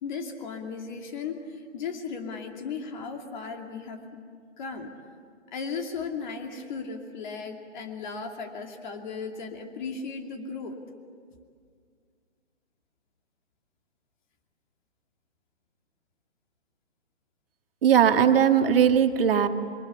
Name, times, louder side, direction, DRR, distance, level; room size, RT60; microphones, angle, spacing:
voice 1, 0.0-4.2 4.6-4.9 5.5-10.8, left 5 dB, 40° left, 4 dB, 2.7 m, -36 dB
voice 2, 17.8-19.5, right 8 dB, 50° right, 6 dB, 1.9 m, -19 dB
27.5 x 24.5 x 8.4 m, 2.1 s
hypercardioid pair, 145°, 36 cm